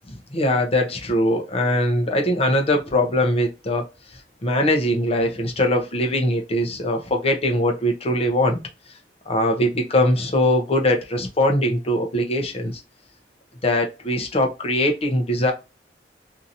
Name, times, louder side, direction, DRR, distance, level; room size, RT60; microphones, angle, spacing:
voice 1, 0.1-3.9 4.4-8.6 9.3-12.8 13.6-15.5, left 1 dB, 35° left, 0.7 m, -21 dB
2.8 x 2.6 x 2.6 m
head